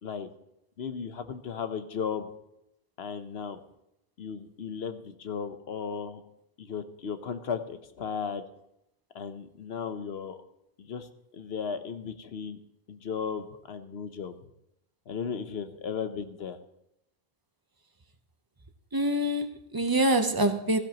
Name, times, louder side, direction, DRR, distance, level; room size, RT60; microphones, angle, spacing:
voice 1, 0.8-2.3 3.0-3.6 4.2-6.2 6.6-8.4 9.1-10.4 10.8-12.6 12.9-14.3 15.1-16.6, left 6 dB, 80° left, 1.2 m, -35 dB
voice 2, 18.9-20.8, right 1 dB, 25° right, 0.8 m, -25 dB
16.0 x 15.0 x 3.0 m
omnidirectional pair, 1.0 m